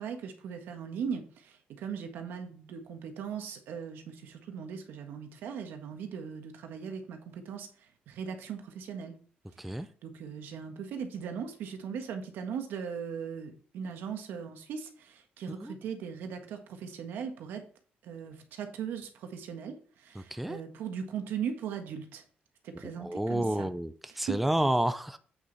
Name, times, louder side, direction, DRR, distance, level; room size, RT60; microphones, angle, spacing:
voice 1, 0.0-7.7 8.1-9.2 9.7-17.6 18.0-22.2 22.6-23.7 24.3-24.4, right 7 dB, 80° right, 1.5 m, -39 dB
voice 2, 20.2-20.6 22.8-25.2, right 1 dB, 5° right, 0.4 m, -30 dB
8.1 x 6.5 x 4.0 m
cardioid pair, 150°, 3 cm